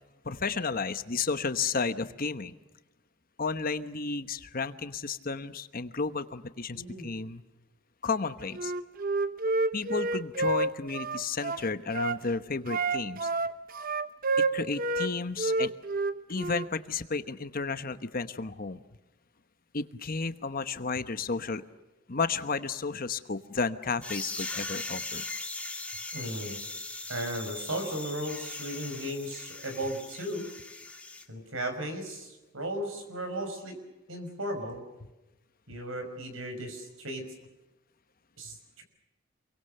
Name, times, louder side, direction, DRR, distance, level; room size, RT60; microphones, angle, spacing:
voice 1, 0.2-2.5 3.4-7.4 8.0-8.7 9.7-13.3 14.5-15.7 16.3-18.8 19.7-21.6 22.1-25.2, left 4 dB, 45° left, 11 dB, 1.1 m, -32 dB
voice 2, 6.7-7.1 26.1-26.6 27.1-30.5 31.3-33.8 34.1-34.8 35.7-37.2 38.4-38.8, right 1 dB, 65° right, 7 dB, 5.7 m, -36 dB
Wind instrument woodwind instrument, 8.5-12.2 12.7-15.1 15.4-16.7, right 3 dB, 40° right, 0.9 m, -29 dB
sound 1, 24.0-31.2, left 3 dB, 5° left, 2.2 m, -39 dB
28.0 x 23.5 x 6.6 m, 1.1 s
head